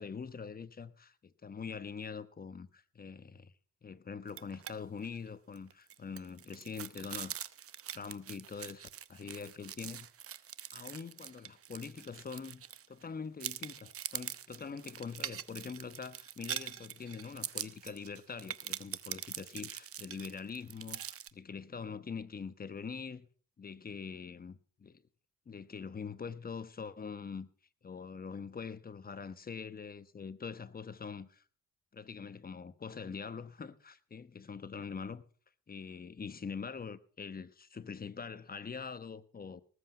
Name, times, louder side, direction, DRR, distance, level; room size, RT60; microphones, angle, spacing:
voice 1, 0.0-3.5 3.8-7.4 7.9-10.1 10.7-23.3 23.6-25.0 25.5-27.5 27.8-31.4 31.9-35.2 35.7-39.6, left 5 dB, 30° left, 1.1 m, -44 dB
sound 1, 4.3-4.7 5.0-5.2 5.5-13.0 13.4-21.3, right 10 dB, 50° right, 0.8 m, -43 dB
19.0 x 8.1 x 5.8 m
cardioid pair, 90°, 30 cm